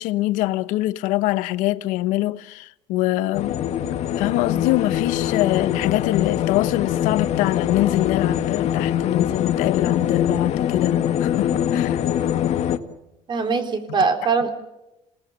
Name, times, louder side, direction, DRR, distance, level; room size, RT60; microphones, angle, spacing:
voice 1, 0.0-3.6 4.2-12.0, left 17 dB, 85° left, 0.9 m, -24 dB
sound 1, 3.3-12.8, left 10 dB, 60° left, 1.7 m, -23 dB
voice 2, 13.3-14.5, right 5 dB, 40° right, 4.1 m, -21 dB
28.0 x 18.5 x 8.9 m
cardioid pair, 110°, 13 cm